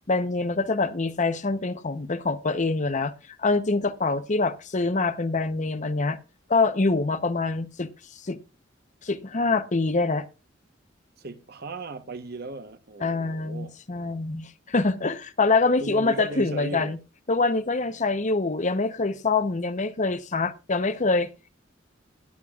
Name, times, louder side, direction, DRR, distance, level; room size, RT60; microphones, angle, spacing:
voice 1, 0.1-3.1 3.4-6.2 6.5-8.4 9.0-10.2 13.0-17.0 17.3-21.3, left 3 dB, 40° left, 0.8 m, -25 dB
voice 2, 11.2-13.8 15.8-16.9, right 2 dB, 55° right, 1.1 m, -37 dB
18.0 x 9.5 x 2.4 m
head